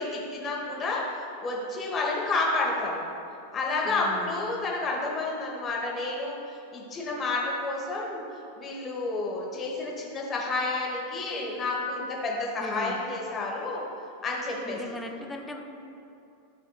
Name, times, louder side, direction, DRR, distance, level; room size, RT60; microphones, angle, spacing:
voice 1, 0.0-3.0 3.5-8.2 8.6-13.8 14.2-14.8, left 3 dB, 25° left, -2 dB, 1.2 m, -30 dB
voice 2, 3.8-4.3 12.6-13.0 14.6-15.6, left 1 dB, 10° left, 3 dB, 0.6 m, -37 dB
11.0 x 4.3 x 2.3 m, 2.6 s
figure-of-eight pair, 90°, 0 cm